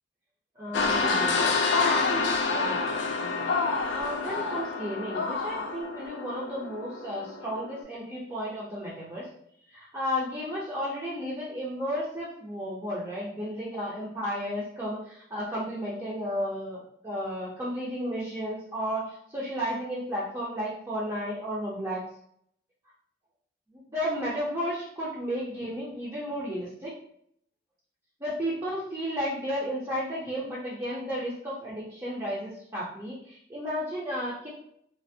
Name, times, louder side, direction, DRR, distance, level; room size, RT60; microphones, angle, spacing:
voice 1, 0.6-3.5 3.9-9.3 9.7-22.0 23.7-26.9 28.2-34.5, equal, 20° right, -6 dB, 0.6 m, -33 dB
sound 1, 0.7-7.8, left 4 dB, 75° left, 0.4 m, -28 dB
3.2 x 2.1 x 2.6 m, 0.68 s
head